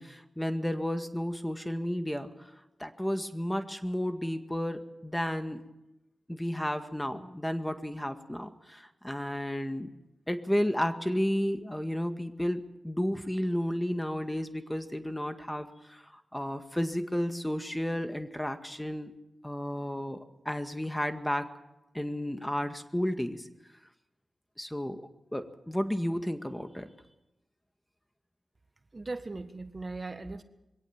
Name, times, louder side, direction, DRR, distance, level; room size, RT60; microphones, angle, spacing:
voice 1, 0.0-2.5 2.8-5.6 6.3-9.9 10.3-19.1 19.4-21.5 21.9-23.5 24.6-25.0 25.3-26.9, equal, 10° left, 8 dB, 1.9 m, -32 dB
voice 2, 28.9-30.4, right 3 dB, 40° right, 9 dB, 1.5 m, -38 dB
22.5 x 17.0 x 7.3 m, 0.93 s
cardioid pair, 40°, 0 cm